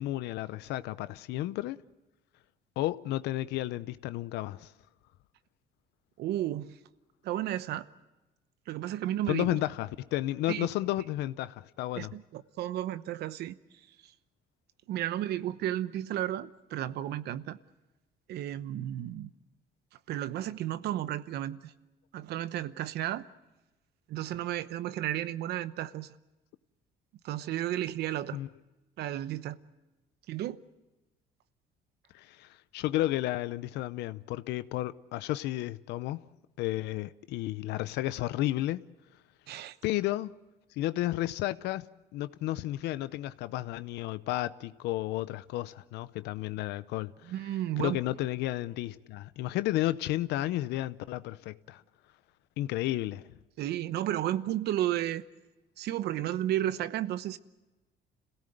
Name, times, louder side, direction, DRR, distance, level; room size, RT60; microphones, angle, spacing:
voice 1, 0.0-1.8 2.8-4.7 9.3-12.1 28.3-28.5 32.1-36.2 36.6-38.8 39.8-40.3 40.8-47.3 47.8-51.8 52.6-53.2, left 15 dB, 85° left, 0.7 m, -32 dB
voice 2, 6.2-6.8 7.2-7.9 8.7-9.6 10.5-10.7 12.0-13.6 14.9-17.6 18.3-19.3 20.1-21.7 22.1-23.2 24.1-26.2 27.2-28.4 29.0-29.6 30.3-30.6 39.5-39.8 47.2-48.0 53.6-55.2 55.8-57.4, right 13 dB, 75° right, 0.9 m, -33 dB
27.0 x 17.5 x 7.9 m
cardioid pair, 110°, 17 cm